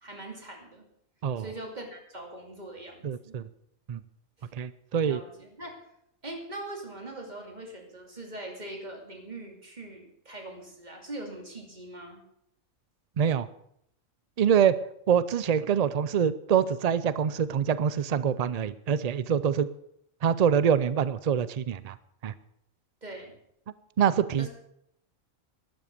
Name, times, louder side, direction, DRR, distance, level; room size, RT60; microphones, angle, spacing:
voice 1, 0.0-0.8 1.4-3.4 4.4-4.5 5.0-5.8 6.2-12.2 23.0-23.3 24.4-24.5, right 1 dB, 30° right, 2 dB, 2.8 m, -42 dB
voice 2, 3.0-3.4 3.9-4.0 4.5-5.2 13.2-13.5 14.4-14.7 15.1-19.7 20.2-22.0 22.2-22.3 24.0-24.5, right 8 dB, 85° right, 15 dB, 0.3 m, -25 dB
12.0 x 11.0 x 6.8 m, 0.74 s
omnidirectional pair, 1.4 m